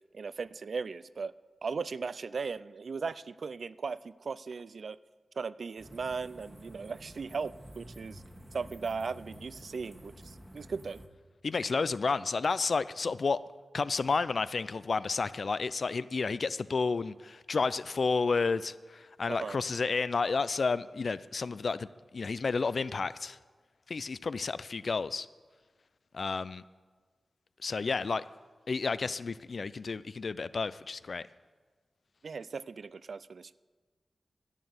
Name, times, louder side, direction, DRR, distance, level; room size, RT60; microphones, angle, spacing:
voice 1, 0.1-1.3 1.6-5.0 5.4-8.2 8.5-11.0 19.3-19.6 32.2-33.5, right 5 dB, 70° right, 17 dB, 0.3 m, -37 dB
sound 1, 5.8-11.1, equal, 10° right, 1.3 m, -51 dB
voice 2, 11.4-13.4 13.7-21.9 22.1-23.4 23.9-25.3 26.1-26.6 27.6-28.2 28.7-31.3, left 4 dB, 65° left, 16 dB, 0.4 m, -31 dB
11.0 x 8.6 x 7.9 m, 1.4 s
wide cardioid pair, 70°, 0 cm